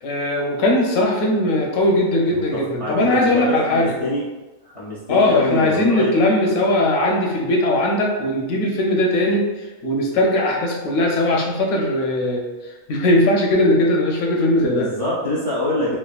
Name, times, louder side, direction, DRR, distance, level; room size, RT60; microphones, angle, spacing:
voice 1, 0.0-3.9 5.1-9.5 9.8-12.4 12.9-14.9, left 1 dB, 85° left, -1 dB, 1.0 m, -19 dB
voice 2, 2.3-4.2 4.6-6.1 14.7-16.0, left 1 dB, 50° right, -9 dB, 0.4 m, -25 dB
3.3 x 2.1 x 2.3 m, 1.1 s
omnidirectional pair, 1.4 m